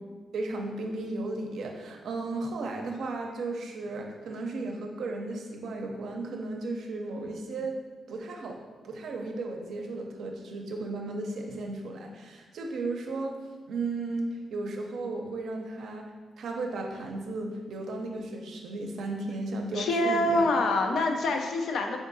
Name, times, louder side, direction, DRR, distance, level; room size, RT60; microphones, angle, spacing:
voice 1, 0.3-7.8 8.1-8.6 8.8-13.3 13.7-16.1 16.4-20.5 20.9-21.0, right 2 dB, 80° right, 1 dB, 0.5 m, -35 dB
voice 2, 19.7-22.0, left 2 dB, 80° left, 3 dB, 0.4 m, -26 dB
3.6 x 3.6 x 2.6 m, 1.4 s
cardioid pair, 85°, 0 cm